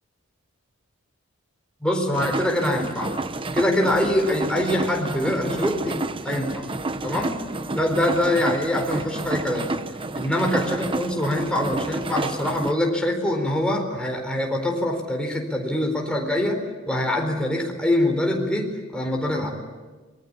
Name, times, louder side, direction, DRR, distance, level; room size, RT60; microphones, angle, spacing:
voice 1, 1.8-3.1 3.5-6.7 7.0-7.4 7.8-9.7 10.1-16.6 16.9-19.5, left 1 dB, 5° left, 1 dB, 4.3 m, -24 dB
sound 1, 2.1-12.7, right 2 dB, 25° right, 0.9 m, -30 dB
27.0 x 21.0 x 9.8 m, 1.3 s
head